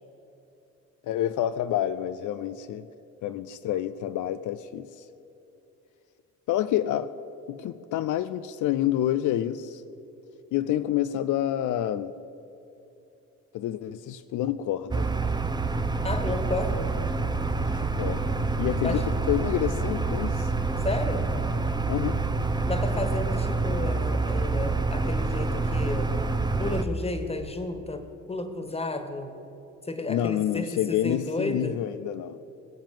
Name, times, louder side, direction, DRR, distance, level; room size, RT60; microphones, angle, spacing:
voice 1, 1.0-2.9 3.2-5.1 6.5-7.1 7.5-9.8 10.5-12.1 13.5-15.1 17.6-20.5 21.9-22.2 30.1-32.4, left 12 dB, 80° left, 0.5 m, -28 dB
sound 1, 14.9-26.8, right 3 dB, 15° right, 0.8 m, -27 dB
voice 2, 16.0-16.9 18.8-19.0 20.8-21.2 22.7-26.1 26.6-29.3 29.9-31.8, left 2 dB, 20° left, 1.7 m, -32 dB
20.0 x 7.4 x 7.6 m
cardioid pair, 90°, 30 cm